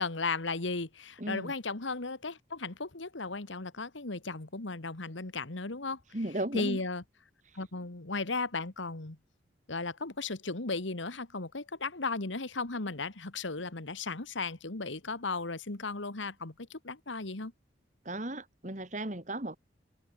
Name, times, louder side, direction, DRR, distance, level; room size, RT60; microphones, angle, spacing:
voice 1, 0.0-6.0 6.5-7.0 7.6-9.2 9.7-17.5, left 3 dB, 85° left, 1.9 m, -35 dB
voice 2, 1.2-1.5 6.1-6.8 7.5-7.6 18.0-19.6, right 1 dB, 40° right, 2.4 m, -35 dB
open air
head